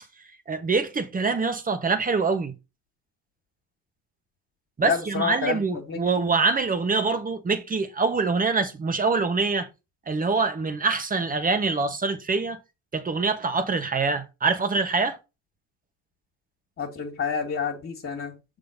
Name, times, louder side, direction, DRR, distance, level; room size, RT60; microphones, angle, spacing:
voice 1, 0.5-2.5 4.8-9.7 10.1-12.6 12.9-15.2, right 4 dB, 25° right, 1.5 m, -25 dB
voice 2, 4.8-6.2 16.8-18.6, left 6 dB, 35° left, 2.2 m, -29 dB
6.7 x 3.9 x 5.2 m
supercardioid pair, 90°, 35 cm